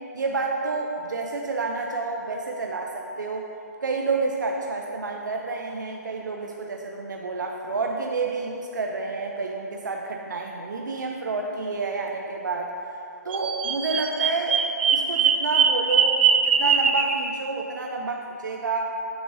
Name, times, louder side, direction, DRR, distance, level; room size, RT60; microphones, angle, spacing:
voice 1, 0.1-3.5 3.8-12.7 13.2-14.6 14.9-18.9, right 3 dB, 85° right, 1 dB, 0.6 m, -29 dB
Bird vocalization bird call bird song, 13.3-17.1, right 6 dB, 35° right, 0.4 m, -21 dB
7.8 x 6.1 x 2.6 m, 2.7 s
hypercardioid pair, 160°, 10 cm